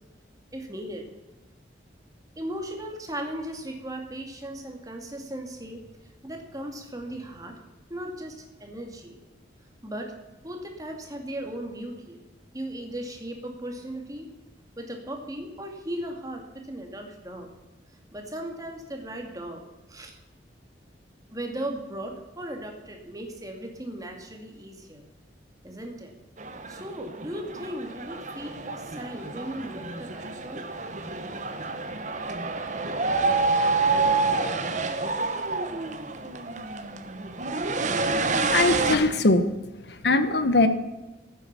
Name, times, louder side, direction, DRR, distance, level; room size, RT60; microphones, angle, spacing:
voice 1, 0.5-1.0 2.4-5.8 6.2-7.5 7.9-9.2 9.8-10.1 10.4-12.2 12.5-14.3 14.8-17.5 18.1-19.6 19.9-20.1 21.3-25.0 25.6-26.1 26.7-30.6, right 1 dB, 20° right, 3 dB, 2.2 m, -37 dB
sound 1, 26.4-39.0, right 3 dB, 40° right, 1.2 m, -28 dB
voice 2, 38.1-39.4 39.9-40.7, left 2 dB, 60° left, 10 dB, 1.0 m, -22 dB
15.5 x 9.2 x 6.8 m, 1.1 s
head